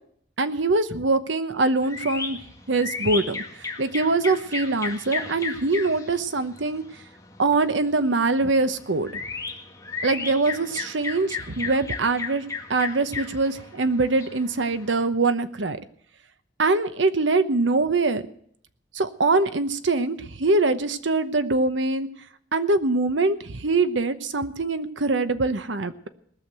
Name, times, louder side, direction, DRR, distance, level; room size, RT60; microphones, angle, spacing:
voice 1, 0.4-2.4 2.7-6.8 7.4-9.2 10.0-12.4 12.7-15.8 16.6-18.3 18.9-22.1 22.5-26.1, right 3 dB, 75° right, 11 dB, 1.0 m, -23 dB
sound 1, 1.8-15.1, left 4 dB, 15° left, 1.9 m, -35 dB
19.5 x 6.5 x 7.8 m, 0.65 s
head